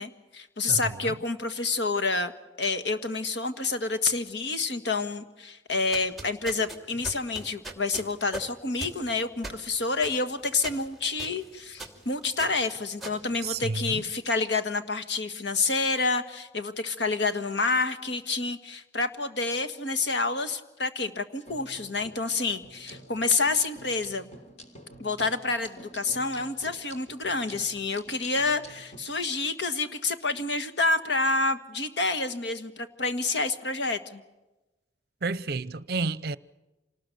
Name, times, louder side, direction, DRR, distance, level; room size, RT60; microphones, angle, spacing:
voice 1, 0.0-2.3 2.6-24.3 25.0-34.2, left 3 dB, 65° left, 1.7 m, -28 dB
voice 2, 0.7-1.2 13.4-14.0 35.2-36.4, right 3 dB, 55° right, 0.7 m, -31 dB
sound 1, 5.7-14.1, right 2 dB, ahead, 2.6 m, -42 dB
sound 2, 21.4-29.0, equal, 35° left, 3.2 m, -48 dB
27.0 x 19.5 x 6.9 m
head